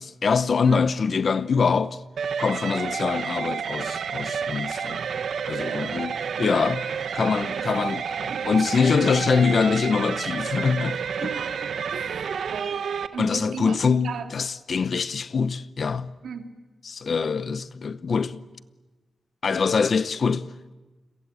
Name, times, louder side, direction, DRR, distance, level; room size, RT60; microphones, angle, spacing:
voice 1, 0.0-2.0 2.4-5.0 5.5-6.9 7.1-11.3 13.2-16.1 16.9-18.4 19.4-20.7, left 5 dB, 50° left, 0.9 m, -24 dB
sound 1, 2.2-13.1, right 6 dB, 70° right, 1.3 m, -30 dB
voice 2, 5.5-6.2 7.5-7.8 8.3-8.6 11.2-12.8 13.1-14.3 16.2-16.4, right 6 dB, 85° right, 2.7 m, -37 dB
29.5 x 23.0 x 8.6 m
wide cardioid pair, 145°, 0 cm